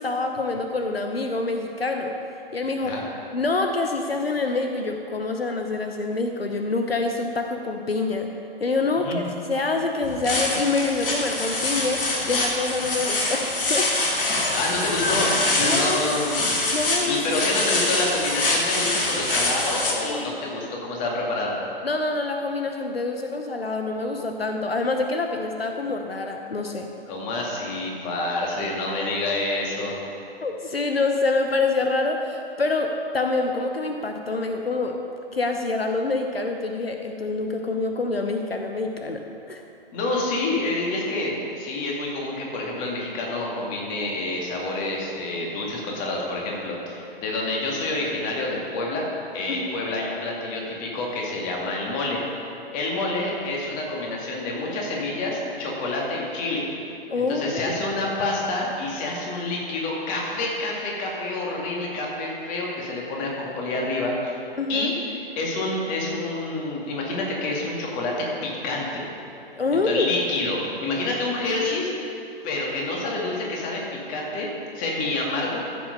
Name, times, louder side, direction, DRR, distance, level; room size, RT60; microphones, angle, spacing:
voice 1, 0.0-2.1 2.5-2.9 3.3-8.3 8.6-13.9 14.4-14.6 15.6-16.0 16.7-17.4 20.0-20.4 21.8-26.9 30.4-35.0 35.3-39.6 49.5-49.7 57.1-57.8 64.6-64.9 69.6-70.2, left 3 dB, 85° left, 4 dB, 0.9 m, -26 dB
voice 2, 9.0-9.3 14.5-16.4 17.1-21.6 27.1-29.9 39.9-49.1 49.3-52.2 52.7-56.7 57.2-64.4 64.7-68.1 68.4-69.1 69.7-71.9 72.4-74.5 74.7-75.6, left 2 dB, 25° left, -2 dB, 2.2 m, -28 dB
sound 1, 10.0-19.9, left 2 dB, 65° left, 2.1 m, -25 dB
14.5 x 6.2 x 5.3 m, 2.7 s
figure-of-eight pair, 120°, 29 cm